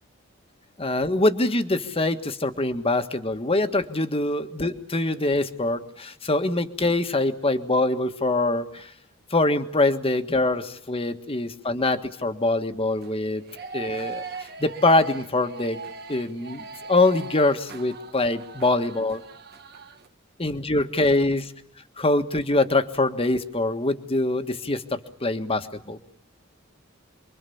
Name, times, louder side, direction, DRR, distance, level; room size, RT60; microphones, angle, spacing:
voice 1, 0.8-8.9 9.3-13.4 13.7-15.8 16.1-19.2 20.4-21.5 22.0-26.0, left 2 dB, 30° left, 7 dB, 1.7 m, -24 dB
sound 1, 12.9-20.1, right 4 dB, 55° right, 1.6 m, -40 dB
28.0 x 23.0 x 7.2 m, 0.68 s
head